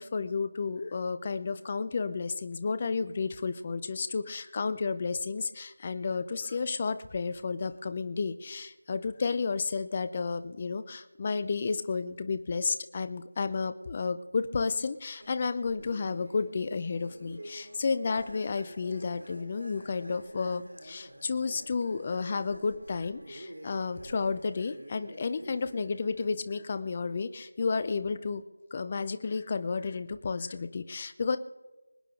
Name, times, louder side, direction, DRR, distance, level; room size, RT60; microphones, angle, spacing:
voice 1, 0.0-28.4 28.7-31.4, left 4 dB, 25° left, 12 dB, 0.7 m, -32 dB
sound 1, 15.2-26.3, right 1 dB, 75° right, 2.9 m, -49 dB
25.5 x 8.9 x 3.8 m, 1.1 s
figure-of-eight pair, 170°, 0 cm